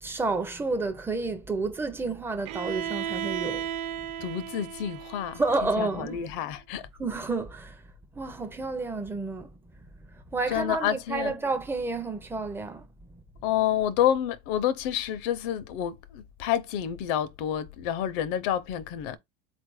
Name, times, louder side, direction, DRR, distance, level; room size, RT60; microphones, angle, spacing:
voice 1, 0.0-3.7 5.4-6.2 7.0-7.8 8.2-9.5 10.1-12.9 13.1-13.2, right 3 dB, 10° right, 0.5 m, -30 dB
Bowed string instrument, 2.4-6.3, right 9 dB, 60° right, 0.6 m, -35 dB
voice 2, 4.2-6.8 10.5-11.4 13.4-19.2, left 10 dB, 70° left, 0.7 m, -29 dB
4.1 x 2.6 x 4.7 m
cardioid pair, 165°, 29 cm